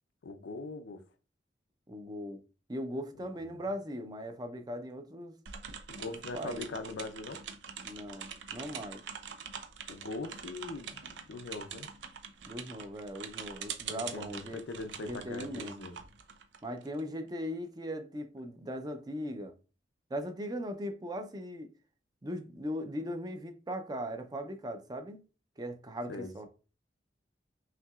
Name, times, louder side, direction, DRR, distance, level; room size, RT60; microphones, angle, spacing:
voice 1, 0.2-1.0 3.4-3.7 5.9-7.5 9.9-11.0 11.3-11.9 13.9-16.0 26.1-26.5, left 3 dB, 90° left, 0.5 m, -41 dB
voice 2, 1.9-2.4 2.7-5.3 6.1-6.7 7.8-9.0 12.5-14.6 15.1-15.9 16.6-19.5 20.1-21.7 22.2-25.2 25.6-26.5, equal, 20° right, 0.5 m, -39 dB
sound 1, 5.5-17.0, right 7 dB, 85° right, 0.5 m, -44 dB
5.7 x 2.8 x 2.4 m
head